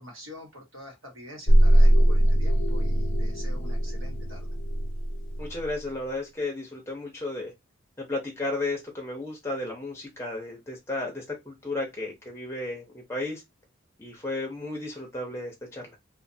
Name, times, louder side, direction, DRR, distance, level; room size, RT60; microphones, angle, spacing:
voice 1, 0.0-4.6, left 1 dB, 75° right, 1.3 m, -46 dB
sound 1, 1.5-5.7, right 1 dB, 75° left, 0.6 m, -21 dB
voice 2, 5.4-7.5 8.0-13.4 14.0-16.0, left 2 dB, 15° left, 0.7 m, -33 dB
2.5 x 2.4 x 2.6 m
head